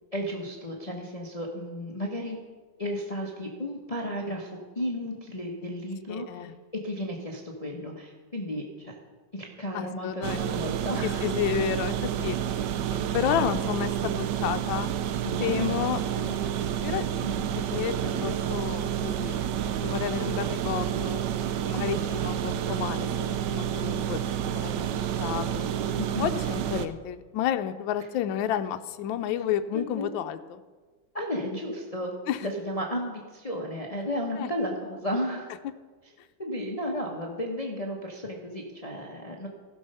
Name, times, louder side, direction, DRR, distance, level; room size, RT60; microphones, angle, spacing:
voice 1, 0.1-2.4 2.8-6.4 6.8-8.9 9.3-11.3 15.2-15.8 16.1-16.3 17.2-17.4 21.7-22.0 26.0-26.3 29.7-30.1 31.1-32.1 32.4-35.5 36.4-39.5, equal, 25° left, 0 dB, 0.8 m, -33 dB
voice 2, 6.1-6.5 9.7-10.4 11.0-12.4 13.1-14.9 15.4-16.0 16.8-17.1 17.5-21.2 21.6-24.9 25.2-25.7 26.2-30.6 32.3-32.5 34.4-34.5, left 10 dB, 75° left, 9 dB, 1.3 m, -31 dB
sound 1, 10.2-26.9, right 9 dB, 70° right, 1.1 m, -29 dB
15.5 x 6.2 x 5.5 m, 1.4 s
omnidirectional pair, 2.2 m